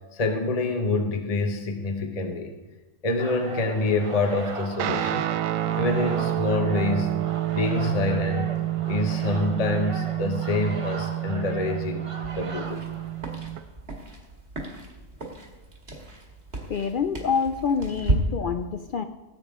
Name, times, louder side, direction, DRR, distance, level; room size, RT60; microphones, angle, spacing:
voice 1, 0.1-2.5 3.0-5.3 5.8-7.1 7.5-8.5 8.9-12.9, left 3 dB, 30° left, 5 dB, 1.0 m, -26 dB
sound 1, 3.2-13.7, right 3 dB, 30° right, 0.7 m, -39 dB
Guitar, 4.8-13.6, right 14 dB, 80° right, 1.0 m, -28 dB
sound 2, 12.7-18.2, right 2 dB, 50° right, 2.2 m, -34 dB
voice 2, 16.7-19.0, left 6 dB, 65° left, 9 dB, 0.5 m, -26 dB
18.0 x 8.5 x 3.7 m, 1.1 s
omnidirectional pair, 1.4 m